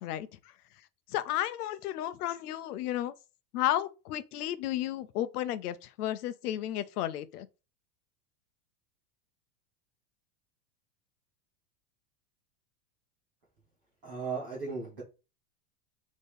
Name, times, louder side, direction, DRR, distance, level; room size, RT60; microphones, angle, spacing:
voice 1, 0.0-0.4 1.1-3.1 3.5-7.5, left 13 dB, 75° left, 0.6 m, -33 dB
voice 2, 14.0-15.0, right 4 dB, 10° right, 0.3 m, -36 dB
4.3 x 3.0 x 3.3 m
supercardioid pair, 170°, 46 cm